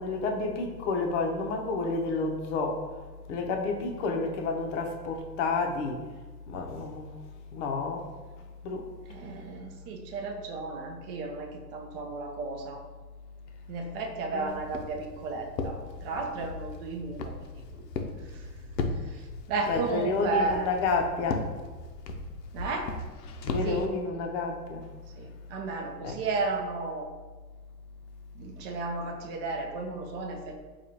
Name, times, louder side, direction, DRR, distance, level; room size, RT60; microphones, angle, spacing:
voice 1, 0.0-2.8 3.3-6.0 6.5-7.1 7.5-8.1 8.6-8.9 14.3-14.6 19.6-21.5 23.4-24.9 26.0-26.2, left 3 dB, 45° left, 2 dB, 0.7 m, -30 dB
voice 2, 9.1-12.8 13.7-17.3 17.7-17.8 18.3-18.4 19.1-20.7 22.5-22.9 23.6-23.9 25.2-27.1 28.3-30.6, right 3 dB, 35° right, 2 dB, 0.5 m, -33 dB
Walk footsteps, 14.5-23.9, left 3 dB, 85° left, 0.6 m, -37 dB
4.7 x 2.3 x 2.9 m, 1.4 s
hypercardioid pair, 115°, 49 cm